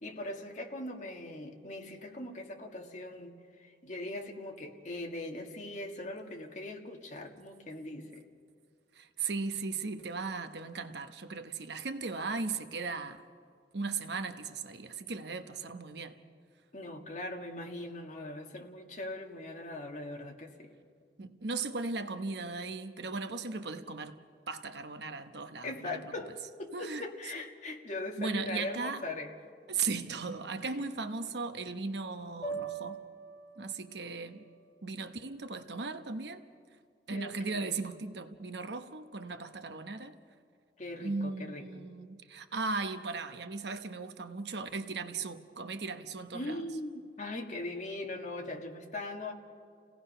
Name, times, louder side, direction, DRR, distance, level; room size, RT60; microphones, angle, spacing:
voice 1, 0.0-8.2 16.7-20.7 25.6-29.3 30.6-30.7 37.1-37.8 40.8-41.9 46.3-49.3, left 2 dB, 45° left, 2.0 m, -40 dB
voice 2, 8.9-13.2 13.7-16.2 21.2-24.2 24.5-26.0 26.7-27.1 28.2-29.0 29.7-33.0 33.6-34.4 34.8-36.4 37.1-40.1 41.0-46.6, right 4 dB, 70° right, 1.0 m, -37 dB
sound 1, 32.4-36.7, right 4 dB, 20° left, 3.6 m, -45 dB
29.5 x 17.5 x 5.6 m
head